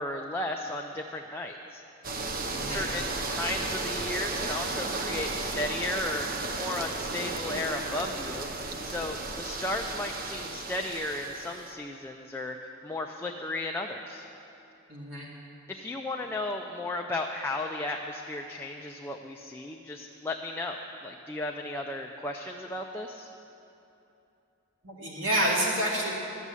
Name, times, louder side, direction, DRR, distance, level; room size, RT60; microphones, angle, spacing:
voice 1, 0.0-1.8 2.6-14.3 15.7-23.3, left 2 dB, 10° left, 1 dB, 0.5 m, -35 dB
sound 1, 2.0-11.7, right 3 dB, 45° right, 0.7 m, -34 dB
voice 2, 2.5-2.9 14.9-15.3 24.8-26.1, right 1 dB, 70° right, -4 dB, 2.4 m, -28 dB
12.5 x 7.3 x 8.2 m, 2.9 s
head